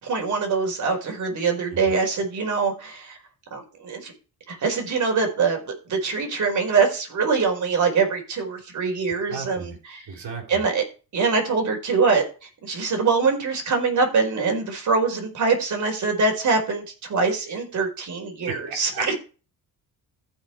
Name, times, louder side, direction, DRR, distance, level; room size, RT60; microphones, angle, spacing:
voice 1, 0.0-3.2 3.5-4.1 4.5-10.0 10.5-10.8 11.1-19.1, right 4 dB, 55° right, 3 dB, 4.6 m, -24 dB
voice 2, 9.2-9.8 10.1-10.7 18.7-19.1, right 4 dB, 70° right, 2 dB, 3.9 m, -35 dB
14.5 x 5.3 x 4.5 m, 0.34 s
cardioid pair, 95°, 36 cm